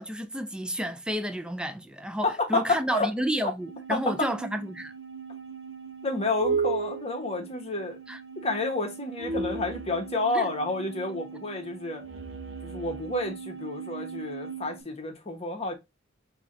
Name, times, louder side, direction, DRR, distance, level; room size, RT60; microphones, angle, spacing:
voice 1, 0.0-4.9 8.1-8.2 10.3-10.5, equal, 5° right, 0.5 m, -31 dB
voice 2, 2.2-3.1 3.9-4.3 6.0-8.0 8.4-12.0 12.6-15.7, left 2 dB, 30° left, 1.2 m, -30 dB
sound 1, 3.6-14.8, right 5 dB, 75° right, 1.0 m, -36 dB
6.0 x 2.9 x 2.6 m
head